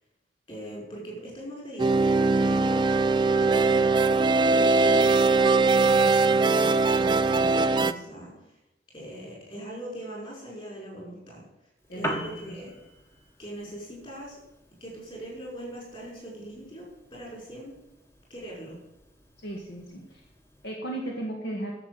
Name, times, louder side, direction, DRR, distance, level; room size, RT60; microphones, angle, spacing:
voice 1, 0.5-2.9 3.4-3.9 4.5-8.6 8.9-11.4 11.9-12.7 13.4-14.4 14.8-16.9 17.1-17.8 18.3-18.8, right 1 dB, 30° left, -3 dB, 5.4 m, -41 dB
sound 1, 1.8-7.9, right 3 dB, 25° right, 0.4 m, -21 dB
Piano, 11.8-20.8, equal, 15° left, 1.4 m, -43 dB
voice 2, 11.9-12.6 19.4-20.3 20.6-21.7, right 1 dB, 60° left, -1 dB, 2.0 m, -36 dB
11.5 x 7.3 x 8.0 m, 0.90 s
head